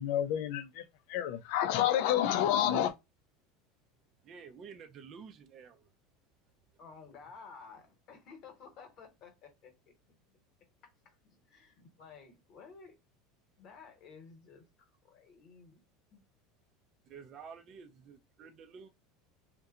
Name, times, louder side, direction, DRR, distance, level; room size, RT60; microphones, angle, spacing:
voice 1, 0.0-2.9, left 11 dB, 70° left, 0.4 m, -29 dB
voice 2, 4.2-5.9 17.0-18.9, right 6 dB, 40° right, 0.4 m, -50 dB
voice 3, 6.8-10.2 11.0-13.0 13.6-15.8 16.1-16.2, left 5 dB, 50° left, 1.0 m, -54 dB
2.7 x 2.1 x 2.4 m
supercardioid pair, 120°, 0 cm